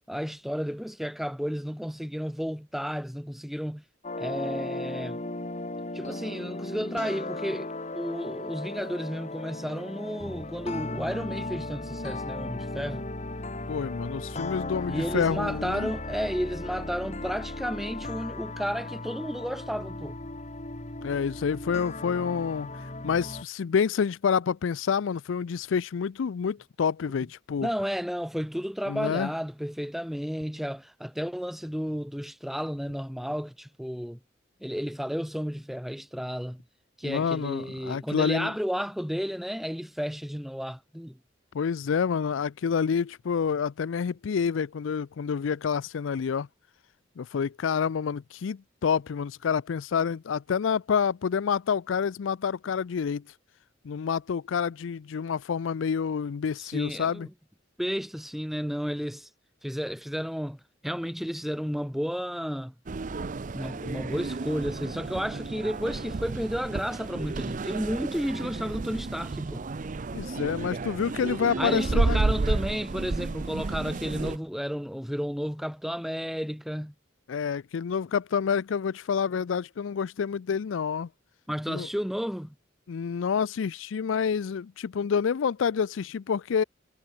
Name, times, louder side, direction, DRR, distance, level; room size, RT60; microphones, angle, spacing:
voice 1, 0.1-3.8 4.2-5.2 5.9-13.1 14.9-20.2 27.6-34.2 34.6-36.6 37.0-41.2 56.6-57.3 57.8-59.3 59.6-62.7 63.5-69.6 71.6-76.9 81.5-82.5, equal, ahead, 1.5 m, -32 dB
sound 1, 4.0-23.4, left 2 dB, 40° left, 2.4 m, -36 dB
voice 2, 13.7-15.9 21.0-22.7 23.0-27.7 28.9-29.3 37.0-38.5 41.5-46.5 47.2-53.2 53.8-57.3 70.1-72.2 77.3-81.1 81.7-81.9 82.9-86.6, left 6 dB, 90° left, 0.4 m, -28 dB
sound 2, 62.9-74.4, right 3 dB, 40° right, 0.5 m, -31 dB
head